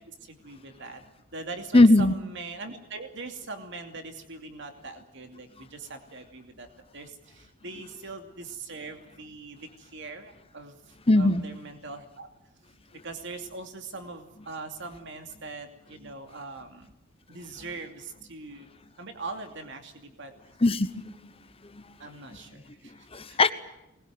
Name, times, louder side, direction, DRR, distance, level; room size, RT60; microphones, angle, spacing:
voice 1, 0.1-1.0 1.3-6.7 6.9-12.3 13.0-16.9 17.3-18.7 19.0-20.3 22.0-23.5, right 3 dB, 60° right, 6 dB, 2.7 m, -41 dB
voice 2, 1.7-2.1 11.1-11.4 20.6-21.3 21.7-21.8 23.1-23.5, left 2 dB, 25° left, 12 dB, 1.0 m, -20 dB
24.0 x 21.0 x 9.4 m, 0.88 s
head